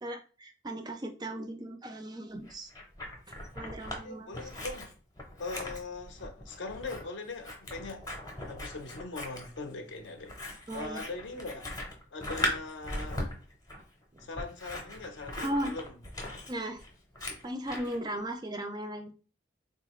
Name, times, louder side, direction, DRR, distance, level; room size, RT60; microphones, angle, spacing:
voice 1, 0.0-2.7 3.6-4.3 10.7-11.0 15.4-15.8 16.5-16.8 17.4-19.1, right 1 dB, 20° right, 0.3 m, -36 dB
Scissors, 2.5-4.0 4.3-18.0, left 1 dB, 20° left, 0.6 m, -39 dB
voice 2, 4.0-4.9 5.4-8.1 8.5-10.3 10.7-11.6 12.1-13.2 14.2-16.0, left 3 dB, 65° left, 0.6 m, -40 dB
3.7 x 2.4 x 3.0 m
head